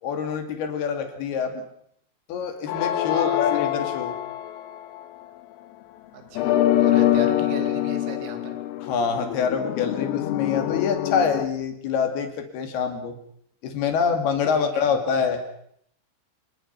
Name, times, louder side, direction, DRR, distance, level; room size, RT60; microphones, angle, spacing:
voice 1, 0.0-1.6 2.3-4.2 8.8-13.2 13.6-15.4, left 6 dB, 55° left, 5 dB, 4.0 m, -26 dB
sound 1, 2.7-5.2 6.4-11.5, left 13 dB, 80° left, 3.7 m, -24 dB
voice 2, 3.1-3.6 6.1-8.6 14.5-15.0, right 6 dB, 80° right, 6 dB, 5.2 m, -37 dB
27.5 x 20.0 x 5.8 m, 0.70 s
omnidirectional pair, 6.0 m